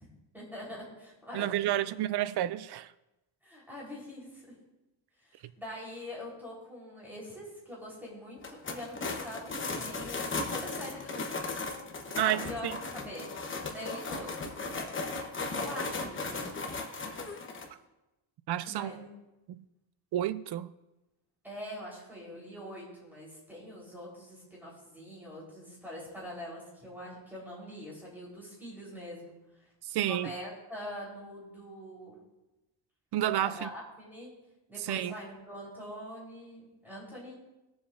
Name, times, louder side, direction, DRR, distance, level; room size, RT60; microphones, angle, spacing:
voice 1, 0.3-1.8 3.4-4.5 5.2-11.5 12.1-13.3 13.7-14.6 15.5-16.7 17.0-17.2 18.7-19.1 21.4-29.3 29.9-32.2 33.4-34.3 34.7-37.3, equal, 5° right, 3.8 m, -44 dB
voice 2, 1.3-2.9 12.2-12.8 18.5-18.9 19.5-19.6 20.1-20.7 29.8-30.3 33.1-33.7 34.8-35.1, right 12 dB, 60° right, 0.5 m, -30 dB
sound 1, 8.4-17.6, left 3 dB, 25° left, 0.9 m, -36 dB
20.0 x 7.1 x 2.5 m
cardioid pair, 160°, 46 cm